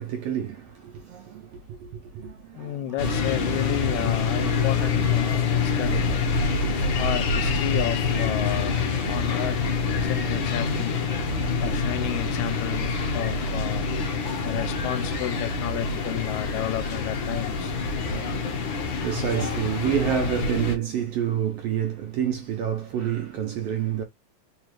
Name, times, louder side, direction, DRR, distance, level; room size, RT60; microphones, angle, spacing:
voice 1, 0.0-3.0 3.3-3.4 3.7-4.1 18.0-24.0, right 9 dB, 75° right, 1.5 m, -29 dB
voice 2, 2.6-6.3 7.0-8.8 9.1-9.6 9.9-11.0 11.6-13.9 14.4-17.7, left 12 dB, 80° left, 1.9 m, -32 dB
sound 1, 3.0-20.8, left 4 dB, 60° left, 1.3 m, -26 dB
4.6 x 2.4 x 3.0 m
omnidirectional pair, 3.4 m